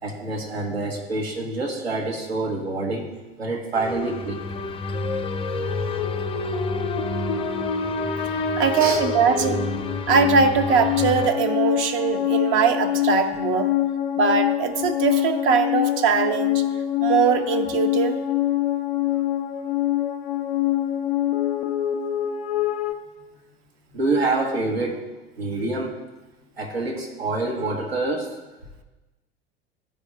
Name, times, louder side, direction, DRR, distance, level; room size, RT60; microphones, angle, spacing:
voice 1, 0.0-3.1 3.4-4.4 8.7-9.1 23.9-25.0 25.4-25.9 26.6-28.3, right 2 dB, 80° right, 0 dB, 1.3 m, -26 dB
sound 1, 3.7-11.3, left 2 dB, 15° left, 0.6 m, -31 dB
sound 2, 5.0-22.9, left 10 dB, 70° left, 0.6 m, -25 dB
voice 2, 8.6-9.7 10.1-13.7 14.2-16.6 17.0-18.2, right 6 dB, 40° right, 7 dB, 0.7 m, -21 dB
12.0 x 4.8 x 3.3 m, 1.1 s
figure-of-eight pair, 70°, 31 cm